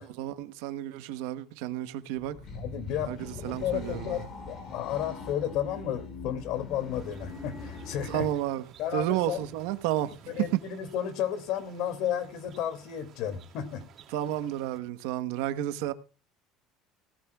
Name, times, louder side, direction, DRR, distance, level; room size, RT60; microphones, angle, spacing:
voice 1, 0.2-2.4 3.0-4.2 8.1-8.6 8.9-10.6 14.1-15.9, right 13 dB, 85° right, 1.1 m, -31 dB
sound 1, 2.1-8.4, left 3 dB, 40° left, 5.0 m, -41 dB
voice 2, 2.6-3.1 3.4-8.3 8.8-9.4 10.3-13.8, left 10 dB, 65° left, 2.4 m, -33 dB
sound 2, 6.9-14.8, right 8 dB, 45° right, 2.5 m, -54 dB
18.0 x 12.5 x 2.3 m
cardioid pair, 140°, 0 cm